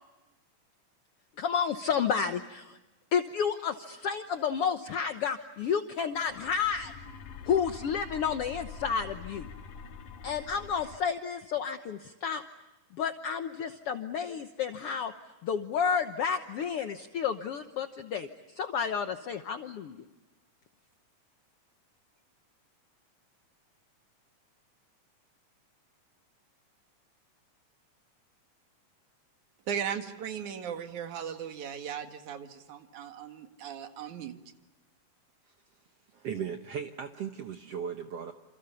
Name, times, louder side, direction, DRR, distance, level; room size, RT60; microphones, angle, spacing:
voice 1, 1.4-2.8 3.1-6.9 7.5-9.5 10.2-12.4 12.9-15.1 15.4-20.0, left 7 dB, 60° left, 7 dB, 1.7 m, -31 dB
sound 1, 6.0-11.0, left 5 dB, 85° left, 3.3 m, -45 dB
voice 2, 29.7-34.4, right 8 dB, 75° right, 7 dB, 3.3 m, -37 dB
voice 3, 36.1-38.3, right 7 dB, 60° right, 6 dB, 2.1 m, -37 dB
28.5 x 28.5 x 7.0 m, 1.1 s
omnidirectional pair, 3.5 m